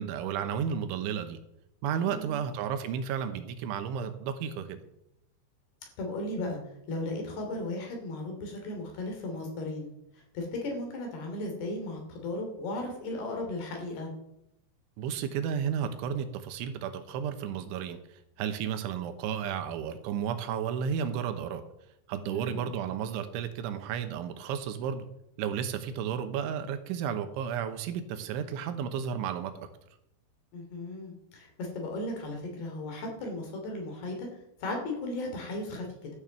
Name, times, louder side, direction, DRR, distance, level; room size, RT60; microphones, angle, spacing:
voice 1, 0.0-1.4 1.8-4.8 15.0-18.0 18.4-21.6 22.1-25.0 25.4-29.7, right 8 dB, 80° right, 9 dB, 3.4 m, -32 dB
voice 2, 2.1-2.4 6.0-6.6 6.9-9.9 10.3-14.1 22.3-22.7 30.5-34.3 34.6-36.1, left 2 dB, 60° left, 2 dB, 4.7 m, -36 dB
13.0 x 7.2 x 7.2 m, 0.83 s
omnidirectional pair, 5.5 m